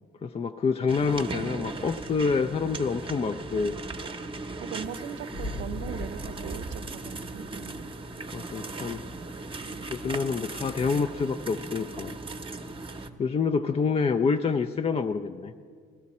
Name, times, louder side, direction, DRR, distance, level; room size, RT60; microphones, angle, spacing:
voice 1, 0.2-3.8 8.3-9.0 9.5-9.6 9.9-12.2 12.9-15.5, left 5 dB, 30° left, 8 dB, 0.4 m, -27 dB
sound 1, 0.9-13.1, right 3 dB, 25° right, 0.8 m, -38 dB
voice 2, 1.1-1.8 4.6-7.9 9.6-9.9 13.7-14.1, right 8 dB, 65° right, 13 dB, 0.6 m, -40 dB
Boom, 5.3-8.3, left 1 dB, 65° left, 0.8 m, -39 dB
16.0 x 13.0 x 4.2 m, 2.1 s
cardioid pair, 90°, 20 cm